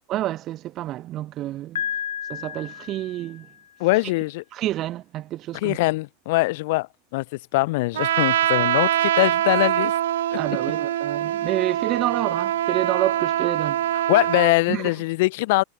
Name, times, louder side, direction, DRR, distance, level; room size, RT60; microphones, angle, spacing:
voice 1, 0.1-1.8 2.3-3.5 4.5-5.8 10.3-13.8 14.7-14.9, right 14 dB, 45° right, 6.5 m, -28 dB
Piano, 1.8-3.7, left 9 dB, 85° left, 3.2 m, -32 dB
voice 2, 3.8-4.4 5.6-6.9 7.1-7.2 7.5-9.9 14.1-15.6, left 22 dB, 65° left, 7.9 m, -22 dB
Trumpet, 7.9-14.6, right 12 dB, 80° right, 1.4 m, -23 dB
hypercardioid pair, 100°, 0 cm